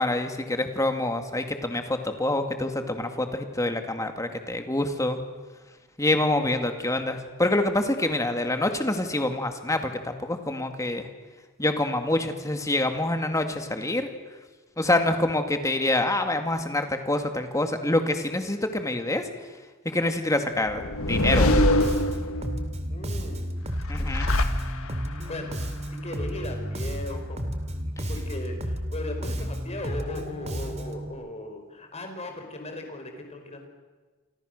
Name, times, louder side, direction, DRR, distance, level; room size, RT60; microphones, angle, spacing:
voice 1, 0.0-5.2 6.0-11.0 11.6-14.1 14.8-19.2 19.8-20.8 21.1-21.6 23.9-24.3, left 1 dB, 15° left, 6 dB, 2.3 m, -26 dB
sound 1, 20.6-22.7 23.7-25.2, left 1 dB, 75° left, 1.7 m, -24 dB
Bass guitar, 21.2-31.1, equal, 30° right, 2.5 m, -32 dB
voice 2, 22.9-23.5 25.2-25.5 26.0-27.5 28.1-33.7, left 1 dB, 30° left, 4 dB, 4.9 m, -37 dB
28.5 x 25.5 x 6.7 m, 1.3 s
head